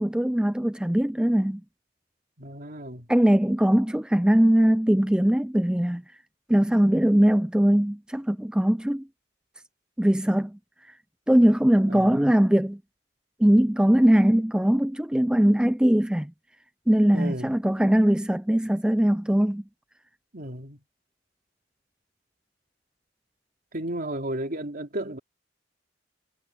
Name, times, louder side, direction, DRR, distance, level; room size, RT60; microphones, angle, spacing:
voice 1, 0.0-1.6 3.1-6.0 6.5-9.1 10.0-10.9 11.3-12.8 13.4-16.3 16.9-19.6, equal, 5° right, 0.4 m, -21 dB
voice 2, 2.4-3.1 11.9-12.2 17.1-17.5 20.3-20.8 23.7-25.2, right 1 dB, 50° right, 3.6 m, -33 dB
head